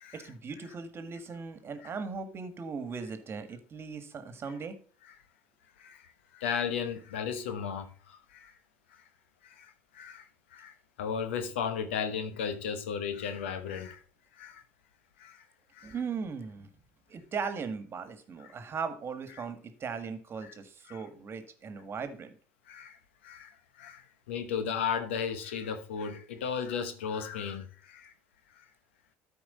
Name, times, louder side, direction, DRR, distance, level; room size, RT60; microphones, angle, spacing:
voice 1, 0.1-4.8 15.8-16.7 17.1-22.3, right 5 dB, 40° right, 1.6 m, -38 dB
voice 2, 5.8-8.5 8.9-9.0 9.4-14.0 14.3-14.6 15.2-15.4 15.7-15.9 18.4-18.5 19.4-19.5 20.4-20.5 20.9-21.0 22.7-23.0 23.2-28.1 28.5-28.7, left 7 dB, 85° left, 1.0 m, -36 dB
12.5 x 4.8 x 4.2 m
hypercardioid pair, 75°, 6 cm